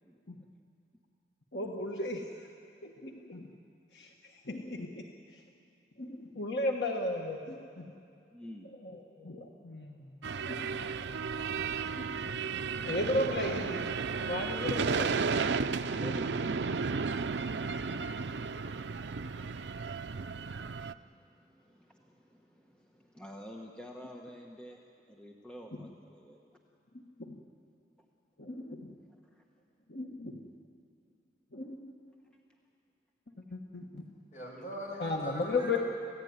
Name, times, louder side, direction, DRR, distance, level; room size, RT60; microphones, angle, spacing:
voice 1, 1.5-2.5 2.8-3.5 3.9-5.0 5.3-5.4 6.0-7.9 8.7-10.9 11.9-12.4 12.8-13.8 14.2-15.3 26.9-27.4 28.4-28.9 29.9-30.4 31.5-31.8 33.5-34.0 35.0-35.8, left 2 dB, 70° left, 1 dB, 1.5 m, -36 dB
voice 2, 8.3-8.7 15.8-16.3 17.6-26.4 29.1-29.2, equal, 5° left, 0 dB, 1.2 m, -50 dB
sound 1, 10.2-20.9, right 5 dB, 75° right, 0.5 m, -33 dB
voice 3, 34.3-35.8, equal, 40° left, -3 dB, 6.3 m, -41 dB
26.5 x 16.0 x 9.6 m, 2.5 s
head